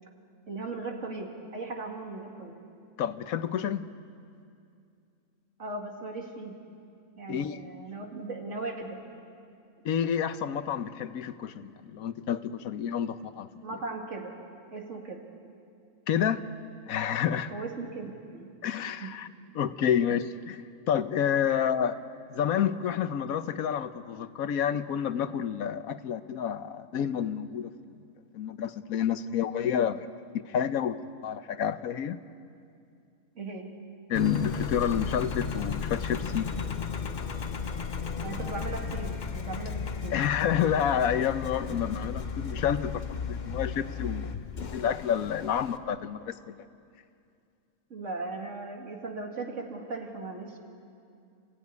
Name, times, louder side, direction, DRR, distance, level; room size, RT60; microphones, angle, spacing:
voice 1, 0.5-2.6 5.6-6.6 7.2-9.0 13.6-14.3 14.7-15.2 17.5-18.5 19.0-19.1 21.5-21.6 29.7-29.9 33.3-33.7 38.2-40.2 47.9-50.6, right 3 dB, 60° right, 1 dB, 2.8 m, -38 dB
voice 2, 3.0-3.9 7.3-7.6 9.8-13.5 16.1-16.4 16.9-17.5 18.6-19.3 19.5-20.6 20.9-22.0 22.3-27.7 28.3-30.1 30.5-31.0 31.2-32.2 34.1-36.5 40.1-44.3 44.6-46.6, left 9 dB, 85° left, 12 dB, 1.3 m, -29 dB
Engine, 34.1-45.8, left 6 dB, 40° left, 0.8 m, -34 dB
28.0 x 15.0 x 9.5 m, 2.4 s
omnidirectional pair, 1.4 m